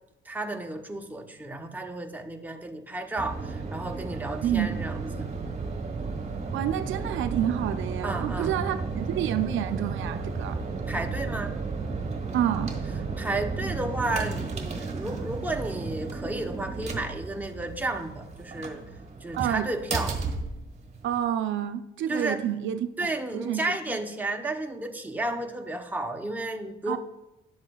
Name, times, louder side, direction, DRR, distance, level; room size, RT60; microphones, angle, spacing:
voice 1, 0.3-5.3 8.0-8.5 10.9-11.5 13.2-18.8 19.2-20.2 22.1-22.4 23.0-27.0, right 2 dB, 10° right, 4 dB, 0.8 m, -32 dB
sound 1, 3.2-21.2, right 4 dB, 35° right, 1.3 m, -33 dB
voice 2, 4.4-4.8 6.5-10.6 12.3-12.7 19.4-19.7 21.0-23.6 26.9-27.0, right 10 dB, 75° right, 11 dB, 0.4 m, -29 dB
10.5 x 7.3 x 2.3 m, 0.93 s
cardioid pair, 90°, 20 cm